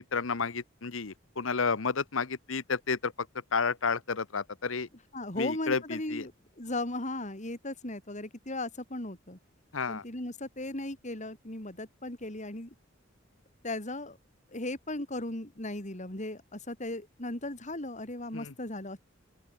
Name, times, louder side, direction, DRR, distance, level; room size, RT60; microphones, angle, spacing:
voice 1, 0.0-3.1 3.5-4.9 5.4-6.3 9.7-10.0 18.3-18.5, left 5 dB, 75° left, 1.1 m, -31 dB
voice 2, 5.1-6.3 6.6-9.4 9.9-12.7 13.6-14.2 14.5-19.0, left 2 dB, 35° left, 3.6 m, -37 dB
open air
head